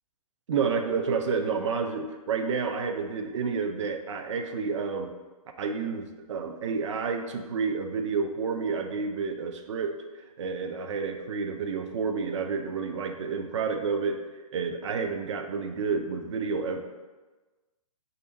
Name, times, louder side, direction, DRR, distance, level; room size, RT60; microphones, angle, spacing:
voice 1, 0.5-5.1 5.6-9.9 10.4-14.2 14.5-16.8, right 5 dB, 50° right, 5 dB, 0.5 m, -30 dB
3.3 x 2.7 x 3.9 m, 1.2 s
figure-of-eight pair, 125°, 19 cm